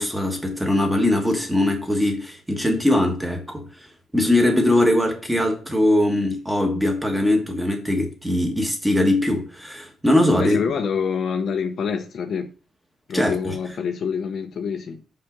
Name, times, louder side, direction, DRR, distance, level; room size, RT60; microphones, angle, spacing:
voice 1, 0.0-3.6 4.1-10.6 13.1-13.5, left 1 dB, 5° right, 1.3 m, -21 dB
voice 2, 10.4-12.5 13.1-15.0, left 6 dB, 45° left, 0.6 m, -26 dB
5.6 x 5.4 x 3.8 m
cardioid pair, 160°, 0 cm